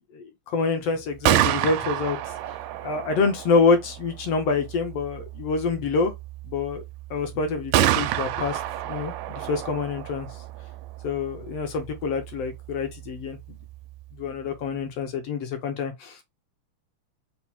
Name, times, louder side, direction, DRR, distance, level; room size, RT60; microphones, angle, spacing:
voice 1, 0.1-2.2 2.5-2.6 2.8-6.1 6.4-6.8 7.1-10.3 11.0-13.4 14.2-16.2, left 4 dB, 70° left, 1.5 m, -26 dB
Gunshot gunfire, 1.0-14.8, right 13 dB, 85° right, 2.2 m, -30 dB
5.9 x 2.1 x 4.2 m
omnidirectional pair, 3.6 m